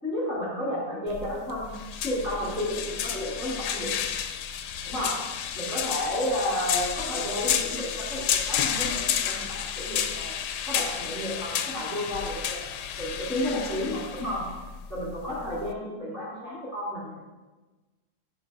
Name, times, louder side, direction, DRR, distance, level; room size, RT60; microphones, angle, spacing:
voice 1, 0.0-1.7 2.0-3.9 4.8-5.2 5.5-10.4 10.7-14.5 14.9-17.2, left 1 dB, 10° left, -11 dB, 2.9 m, -32 dB
sound 1, 1.1-15.7, left 9 dB, 80° left, 1.2 m, -31 dB
11.0 x 3.7 x 5.1 m, 1.2 s
omnidirectional pair, 1.8 m